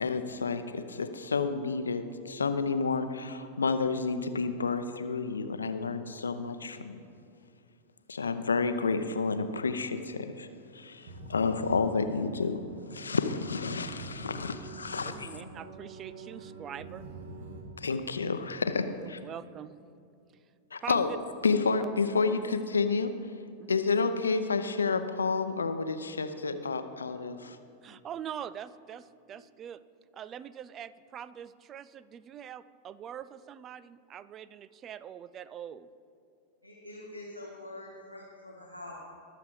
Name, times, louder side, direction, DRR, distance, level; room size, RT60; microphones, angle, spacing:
voice 1, 0.0-7.0 8.1-10.5 10.7-12.6 12.9-15.3 17.8-19.2 20.7-21.1 21.4-23.1 23.7-27.6, left 4 dB, 75° left, 9 dB, 0.7 m, -30 dB
sound 1, 11.0-17.6, right 2 dB, 60° right, 1.8 m, -45 dB
voice 2, 15.0-17.1 19.0-19.8 20.8-21.0 21.8-21.9 22.2-22.4 23.6-23.8 27.8-29.8 30.1-35.9, right 9 dB, 30° right, 17 dB, 0.4 m, -43 dB
voice 3, 36.6-39.0, left 1 dB, 90° right, -2 dB, 1.6 m, -45 dB
20.5 x 7.0 x 4.8 m, 2.5 s
figure-of-eight pair, 90°, 0 cm